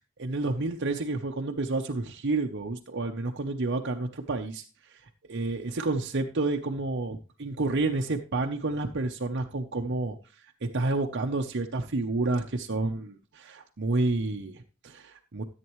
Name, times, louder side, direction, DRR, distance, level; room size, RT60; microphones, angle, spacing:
voice 1, 0.2-10.2 10.6-15.4, right 2 dB, 55° right, 3 dB, 0.8 m, -30 dB
14.0 x 8.4 x 3.1 m, 0.35 s
head